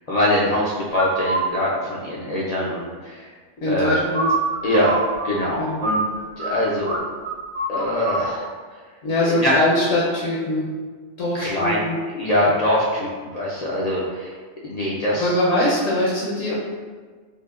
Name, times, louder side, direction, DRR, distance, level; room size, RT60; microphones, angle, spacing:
voice 1, 0.1-3.3 3.7-4.1 4.6-6.0 6.4-7.0 7.7-8.5 9.4-9.6 11.3-11.8 12.1-14.3 14.6-15.3, left 1 dB, 55° left, -6 dB, 0.4 m, -23 dB
sound 1, 0.9-1.5 3.8-6.5 6.8-7.0 7.2-8.2, right 2 dB, 45° right, 0.8 m, -25 dB
voice 2, 3.6-4.3 5.6-5.8 9.0-10.7 11.2-12.0 12.4-12.5 15.2-16.5, left 1 dB, 75° left, -6 dB, 1.1 m, -22 dB
5.2 x 2.2 x 2.4 m, 1.5 s
omnidirectional pair, 1.2 m